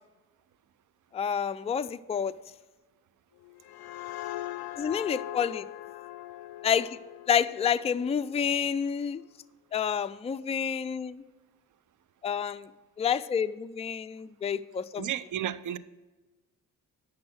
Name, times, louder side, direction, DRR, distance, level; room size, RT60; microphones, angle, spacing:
voice 1, 1.1-2.3 4.8-5.6 6.6-7.0 7.3-9.2 9.7-11.2 12.2-12.7 13.0-15.1, left 7 dB, 20° left, 0.3 m, -29 dB
sound 1, 3.4-8.9, left 15 dB, 75° left, 0.5 m, -41 dB
voice 2, 15.0-15.8, right 11 dB, 55° right, 0.5 m, -32 dB
8.7 x 6.1 x 6.2 m
supercardioid pair, 50°, 37 cm